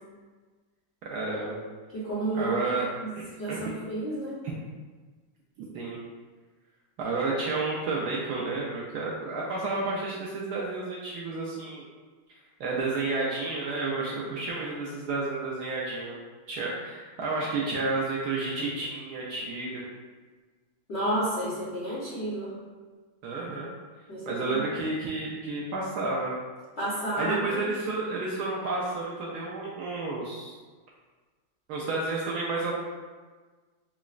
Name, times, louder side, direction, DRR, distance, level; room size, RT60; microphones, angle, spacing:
voice 1, 1.0-1.6 2.3-2.9 3.2-3.7 4.4-4.5 5.7-6.0 7.0-11.8 12.6-16.1 16.5-19.8 23.2-23.7 24.3-26.3 27.2-30.5 31.7-32.7, right 3 dB, 75° right, -4 dB, 0.9 m, -31 dB
voice 2, 1.9-2.6 3.0-3.1 3.4-4.4 20.9-22.5 24.1-24.6 26.8-27.6, right 1 dB, 85° left, -9 dB, 0.5 m, -31 dB
5.7 x 2.0 x 2.4 m, 1.4 s
omnidirectional pair, 2.2 m